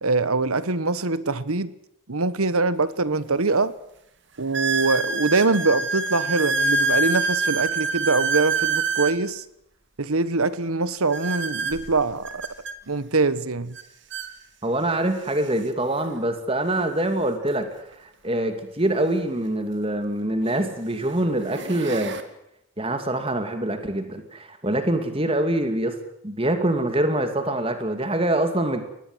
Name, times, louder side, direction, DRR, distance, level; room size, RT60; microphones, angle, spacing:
voice 1, 0.0-1.7 2.1-3.7 4.4-9.4 10.0-12.5 12.9-13.8, right 3 dB, 90° right, 1.3 m, -23 dB
sound 1, 2.8-2.9 3.6-3.7 4.5-9.2 11.1-12.7 13.7-13.8 14.1-14.3 15.1-15.2 17.4-17.5 19.6-19.7 20.4-20.7 21.3-22.2, right 3 dB, 55° right, 2.2 m, -26 dB
voice 2, 14.6-17.7 18.0-22.2 22.8-25.9 26.2-28.8, right 1 dB, 25° right, 2.4 m, -24 dB
23.5 x 19.5 x 8.0 m
head